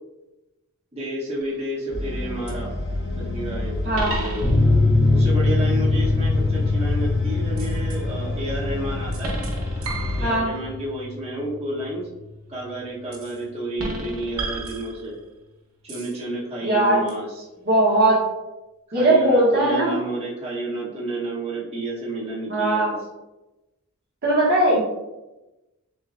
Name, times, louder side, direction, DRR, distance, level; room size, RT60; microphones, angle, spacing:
voice 1, 0.9-2.7 3.1-4.5 5.1-9.3 10.2-12.1 12.5-15.2 15.8-17.5 18.9-22.9, right 1 dB, 30° right, -7 dB, 1.1 m, -31 dB
sound 1, 1.4-1.8 2.5-2.6 3.9-4.9 7.6-8.0 9.1-10.7 13.1-13.4 13.8-15.3 15.9-16.2 17.1-17.2, right 2 dB, 80° right, 0.9 m, -32 dB
sound 2, 1.9-10.4, left 2 dB, 50° left, 0.9 m, -29 dB
sound 3, 4.4-11.5 11.8-11.9 12.2-12.3, left 2 dB, 30° left, 0.6 m, -23 dB
voice 2, 16.6-17.0 17.7-18.2 18.9-19.9 22.5-22.9 24.2-24.8, right 1 dB, 50° right, -5 dB, 1.0 m, -19 dB
6.6 x 2.2 x 2.5 m, 1.0 s
head